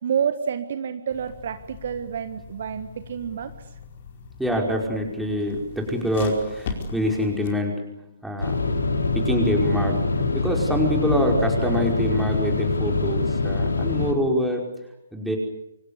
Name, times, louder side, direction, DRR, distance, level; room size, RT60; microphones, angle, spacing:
voice 1, 0.0-3.5, right 7 dB, 45° right, 10 dB, 1.5 m, -28 dB
sound 1, 1.1-7.5, left 5 dB, 40° left, 4.8 m, -39 dB
voice 2, 4.4-7.8 8.2-8.5 9.1-14.6 15.1-15.4, equal, ahead, 0 dB, 5.3 m, -25 dB
sound 2, 8.4-14.1, left 3 dB, 65° left, 3.7 m, -24 dB
29.0 x 25.0 x 6.9 m, 0.86 s
figure-of-eight pair, 130°, 0 cm